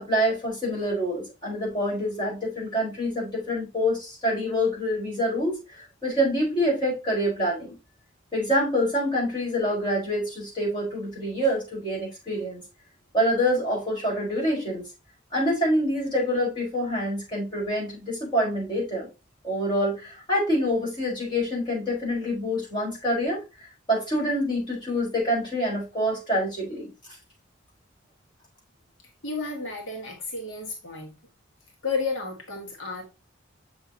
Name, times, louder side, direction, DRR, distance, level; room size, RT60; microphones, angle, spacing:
voice 1, 0.0-7.7 8.3-12.6 13.1-14.8 15.3-19.1 19.4-26.9, equal, 25° left, 4.8 m, -26 dB
voice 2, 29.2-31.1 31.8-33.0, left 4 dB, 75° left, 1.7 m, -32 dB
7.3 x 6.1 x 2.8 m
head